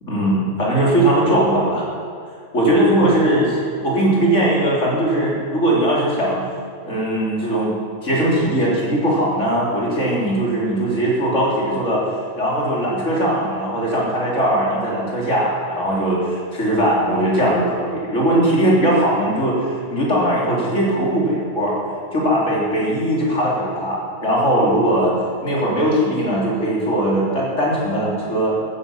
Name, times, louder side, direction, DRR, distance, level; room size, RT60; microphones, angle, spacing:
voice 1, 0.1-1.9 2.5-6.4 6.8-12.0 12.4-21.7 22.1-25.1 25.4-28.6, right 1 dB, 70° left, -4 dB, 3.9 m, -19 dB
14.5 x 10.0 x 7.3 m, 2.3 s
omnidirectional pair, 1.3 m